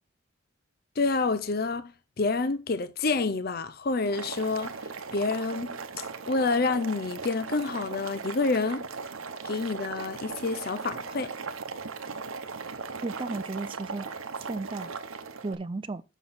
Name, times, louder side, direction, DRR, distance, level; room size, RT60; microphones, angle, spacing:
voice 1, 1.0-4.8 5.1-8.9 9.4-11.4, left 3 dB, 45° left, 0.5 m, -28 dB
Boiling, 4.0-15.5, right 5 dB, 80° right, 0.9 m, -38 dB
voice 2, 13.0-14.9 15.4-16.0, right 3 dB, 25° right, 0.4 m, -35 dB
7.6 x 5.9 x 4.2 m
head